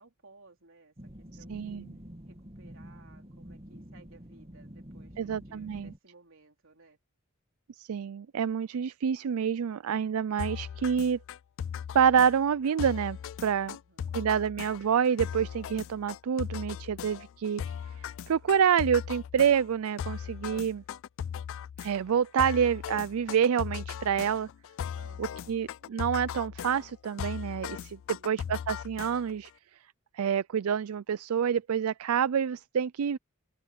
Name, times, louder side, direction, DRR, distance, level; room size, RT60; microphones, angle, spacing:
voice 1, 0.0-1.9 2.3-7.0 13.6-14.6 24.9-25.9 28.1-28.4, right 3 dB, 65° right, 4.2 m, -59 dB
sound 1, 1.0-6.0, equal, 30° right, 2.2 m, -47 dB
voice 2, 1.5-1.9 5.2-5.9 7.8-11.2 11.9-13.7 14.1-17.6 18.0-20.8 21.8-24.5 25.2-29.5 30.1-33.2, right 7 dB, 80° right, 0.4 m, -27 dB
sound 2, 10.4-29.5, left 8 dB, 65° left, 0.3 m, -38 dB
open air
head